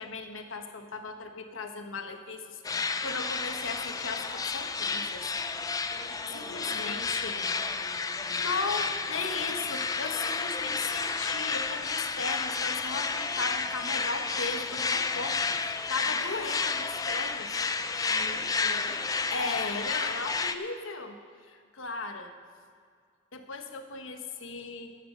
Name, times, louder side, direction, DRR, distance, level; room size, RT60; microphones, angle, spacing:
voice 1, 0.0-5.3 6.3-7.4 8.4-17.6 19.3-21.2 21.5-22.3 23.3-25.0, left 4 dB, 90° left, 6 dB, 1.2 m, -37 dB
sound 1, 2.6-20.6, left 4 dB, 20° left, 0.4 m, -31 dB
voice 2, 5.9-9.6 18.0-19.4, right 1 dB, 50° left, -3 dB, 4.0 m, -48 dB
14.0 x 7.8 x 6.7 m, 2.1 s
head